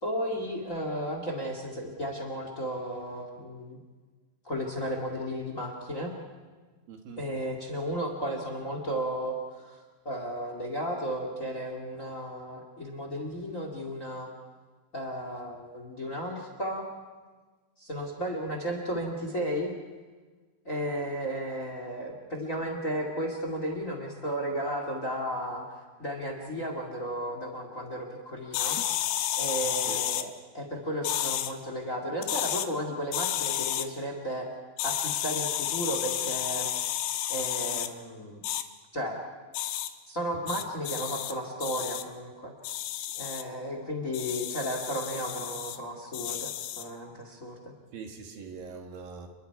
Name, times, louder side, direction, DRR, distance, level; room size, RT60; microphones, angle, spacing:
voice 1, 0.0-3.8 4.4-6.1 7.2-9.8 10.0-14.3 14.9-16.9 17.8-19.7 20.6-25.6 26.0-28.8 29.4-34.5 34.8-36.7 37.3-38.4 38.9-39.2 40.1-42.5 43.1-46.5 46.8-47.7, equal, 25° left, 3 dB, 2.1 m, -34 dB
voice 2, 6.9-7.3 29.9-30.0 47.9-49.3, right 5 dB, 75° right, 3 dB, 3.6 m, -42 dB
sound 1, 28.5-30.3 31.0-31.5 32.2-32.7 33.1-33.9 34.8-37.9 38.4-38.6 39.5-39.9 40.5-41.3 41.6-42.0 42.6-43.4 44.1-45.8 46.1-46.9, left 12 dB, 90° left, 2.7 m, -31 dB
29.5 x 21.5 x 4.7 m, 1.4 s
omnidirectional pair, 4.2 m